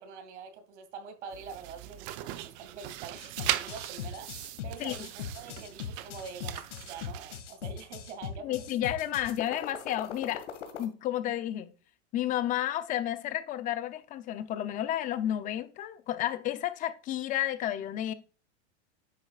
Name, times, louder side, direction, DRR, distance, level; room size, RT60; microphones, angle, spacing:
voice 1, 0.0-4.3 4.6-8.5 8.8-8.9, right 6 dB, 75° right, 2.3 m, -45 dB
sound 1, 1.3-7.4, right 14 dB, 40° right, 0.7 m, -38 dB
sound 2, 3.1-10.8, left 8 dB, 85° left, 2.1 m, -40 dB
voice 2, 8.4-10.5 10.8-11.7 12.1-18.1, left 12 dB, 25° left, 0.6 m, -31 dB
10.0 x 8.1 x 2.4 m
supercardioid pair, 155°, 35 cm